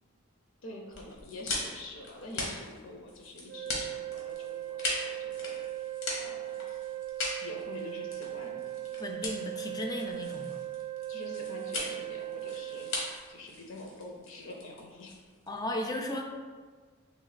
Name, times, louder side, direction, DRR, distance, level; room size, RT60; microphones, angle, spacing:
voice 1, 0.6-6.5 7.4-8.6 11.1-15.1, left 2 dB, 70° left, 1 dB, 0.6 m, -46 dB
sound 1, 0.9-15.6, left 2 dB, 85° left, 0.9 m, -39 dB
sound 2, 3.5-13.1, right 13 dB, 55° right, 0.3 m, -38 dB
voice 2, 9.0-10.6 15.5-16.2, left 1 dB, 20° left, 2 dB, 0.4 m, -35 dB
3.1 x 3.1 x 4.0 m, 1.5 s
head